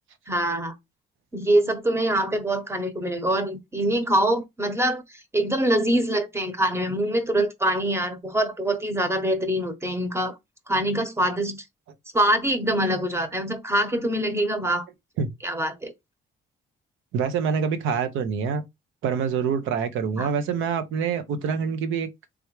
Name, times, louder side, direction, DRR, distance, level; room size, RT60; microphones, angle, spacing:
voice 1, 0.3-0.7 1.3-5.0 5.3-10.3 10.7-11.6 12.1-14.8 15.4-15.9 20.2-20.3, right 1 dB, 15° right, 1.0 m, -24 dB
voice 2, 17.1-18.6 19.0-22.1, right 6 dB, 85° right, 0.8 m, -26 dB
3.4 x 3.3 x 3.1 m
cardioid pair, 90°, 20 cm